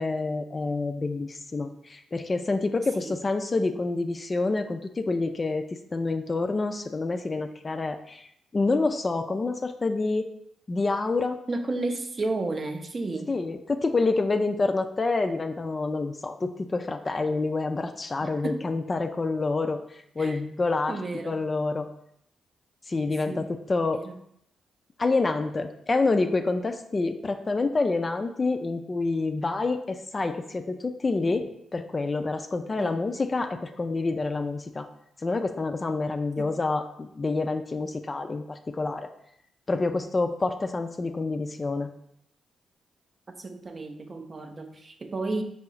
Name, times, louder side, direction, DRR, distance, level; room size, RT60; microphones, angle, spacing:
voice 1, 0.0-8.3 8.5-10.3 10.7-11.4 13.3-19.8 20.2-21.0 21.3-21.9 22.9-24.0 25.0-34.9 35.2-39.1 39.7-41.9, left 3 dB, 35° left, 7 dB, 0.4 m, -27 dB
voice 2, 11.5-13.4 18.2-18.6 20.2-20.4 20.9-21.4 23.1-23.5 23.9-24.1 32.8-33.0 36.4-36.5 43.4-45.4, right 2 dB, 40° right, 5 dB, 0.5 m, -33 dB
4.5 x 2.0 x 3.8 m, 0.74 s
hypercardioid pair, 40°, 0 cm